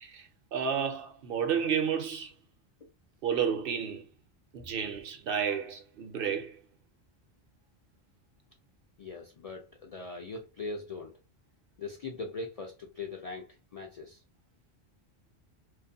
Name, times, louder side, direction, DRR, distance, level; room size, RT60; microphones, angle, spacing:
voice 1, 0.0-2.3 3.2-4.1 4.5-6.6, right 7 dB, 65° right, 0.7 m, -31 dB
voice 2, 9.0-11.1 11.8-13.5 13.7-14.2, left 3 dB, 60° left, 0.4 m, -40 dB
2.5 x 2.3 x 2.6 m
omnidirectional pair, 1.1 m